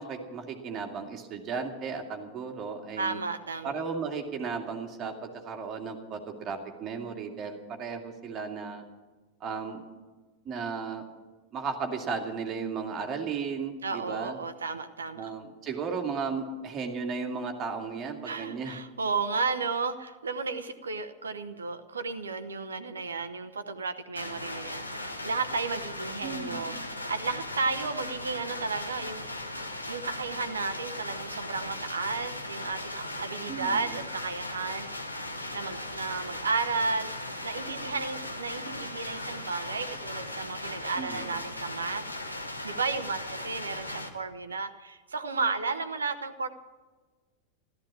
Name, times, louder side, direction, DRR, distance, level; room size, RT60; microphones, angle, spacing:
voice 1, 0.0-3.2 3.6-8.8 9.4-9.9 10.5-11.1 11.5-14.4 15.2-18.8 26.2-26.8 33.5-33.9 41.0-41.4, right 5 dB, 30° right, 3 dB, 2.2 m, -35 dB
voice 2, 3.0-3.7 13.8-15.3 18.2-29.4 29.9-34.9 35.5-37.1 37.4-46.5, right 4 dB, 70° right, 11 dB, 1.0 m, -33 dB
sound 1, 24.1-44.1, left 1 dB, 85° left, 1.5 m, -38 dB
14.5 x 13.0 x 7.4 m, 1.3 s
figure-of-eight pair, 90°, 0 cm